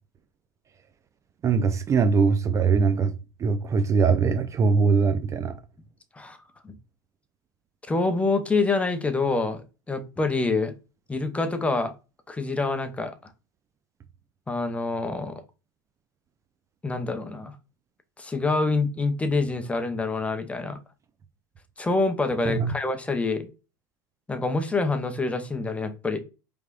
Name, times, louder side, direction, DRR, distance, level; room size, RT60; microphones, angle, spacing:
voice 1, 1.4-3.1 3.4-5.6 22.5-22.7, right 5 dB, 30° right, 0.5 m, -21 dB
voice 2, 7.9-10.7 11.1-11.9 12.3-13.3 14.5-15.4 16.8-17.5 18.2-20.8 21.8-23.5 24.3-26.2, left 3 dB, 10° left, 0.8 m, -26 dB
4.9 x 3.4 x 2.4 m
supercardioid pair, 100°, 10 cm